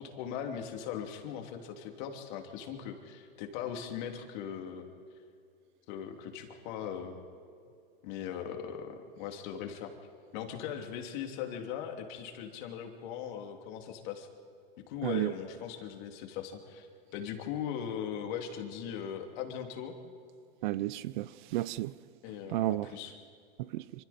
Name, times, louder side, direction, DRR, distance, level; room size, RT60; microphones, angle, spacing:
voice 1, 0.0-4.9 5.9-7.2 8.0-9.9 10.3-14.3 14.9-16.9 17.1-20.0 22.2-23.2, left 8 dB, 50° left, 2.9 m, -39 dB
voice 2, 20.6-21.9 22.5-22.9 23.7-23.8, right 16 dB, 55° right, 0.6 m, -32 dB
26.5 x 26.0 x 4.4 m
supercardioid pair, 145°, 30 cm